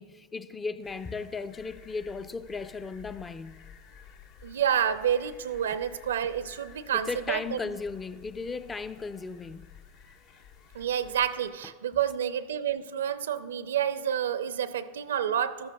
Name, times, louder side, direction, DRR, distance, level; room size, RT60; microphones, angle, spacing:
voice 1, 0.0-3.6 6.9-9.7, left 4 dB, 20° left, 0.5 m, -36 dB
sound 1, 0.8-11.5, left 7 dB, 70° left, 1.5 m, -53 dB
voice 2, 4.4-7.7 10.7-15.7, right 9 dB, 80° right, 0.6 m, -29 dB
14.0 x 12.5 x 2.4 m
hypercardioid pair, 95°, 0 cm